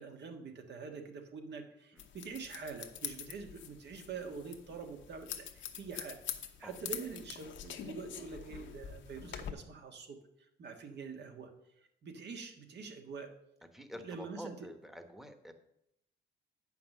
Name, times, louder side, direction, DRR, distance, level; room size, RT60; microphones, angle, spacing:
voice 1, 0.0-6.2 6.6-10.2 10.6-11.5 11.8-13.3 14.0-14.5, right 5 dB, 60° right, 4 dB, 1.6 m, -45 dB
sound 1, 2.0-9.5, left 9 dB, 75° left, 1.0 m, -45 dB
voice 2, 13.7-15.5, equal, ahead, 7 dB, 1.2 m, -48 dB
8.7 x 5.8 x 6.6 m, 0.79 s
cardioid pair, 90°, 20 cm